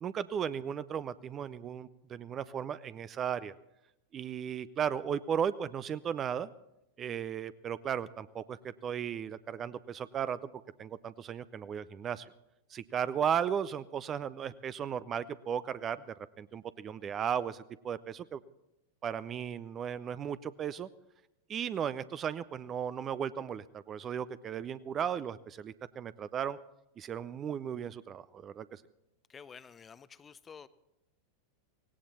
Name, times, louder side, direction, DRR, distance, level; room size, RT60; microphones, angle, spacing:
voice 1, 0.0-3.5 4.1-6.5 7.0-10.4 10.8-12.3 12.7-16.0 16.4-18.4 19.0-20.9 21.5-26.6 27.0-28.8, right 8 dB, 25° right, 17 dB, 0.5 m, -35 dB
voice 2, 29.3-30.7, left 6 dB, 20° left, 16 dB, 0.6 m, -50 dB
18.0 x 17.5 x 4.3 m, 0.89 s
figure-of-eight pair, 90°, 0 cm